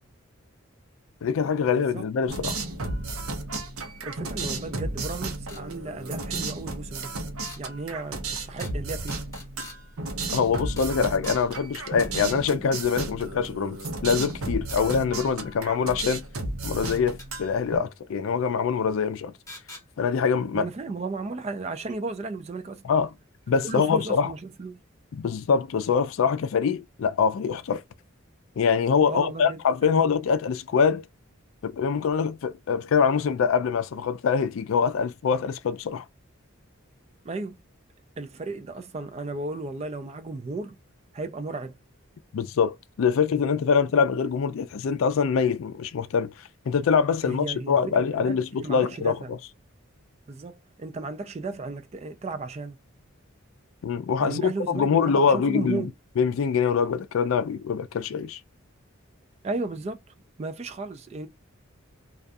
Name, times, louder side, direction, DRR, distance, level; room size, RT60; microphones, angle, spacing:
voice 1, 1.2-2.6 10.3-13.8 14.0-16.2 16.6-19.3 20.0-20.7 22.8-23.1 23.5-24.3 25.1-27.8 28.6-31.0 31.6-36.0 42.3-46.3 46.7-49.4 53.8-55.9 56.2-58.4, left 6 dB, 70° left, 0.3 m, -24 dB
sound 1, 2.3-17.8, right 2 dB, 85° right, 0.7 m, -33 dB
voice 2, 4.0-7.1 7.6-9.2 20.5-22.8 23.6-24.8 29.1-30.1 37.2-37.5 38.2-40.8 41.1-41.7 47.2-49.3 50.3-52.8 54.2-55.9 59.4-60.0 60.4-61.3, right 3 dB, 30° right, 0.3 m, -34 dB
sound 2, 5.5-5.6 7.4-7.6 8.6-8.8 9.1-9.8 10.8-11.0 11.2-11.4 13.6-13.7 14.7-15.0 16.8-17.3 19.5-19.9 21.9-22.0 23.0-23.1 23.4-23.5 23.8-23.9, left 2 dB, 15° left, 0.9 m, -45 dB
2.3 x 2.3 x 2.5 m
head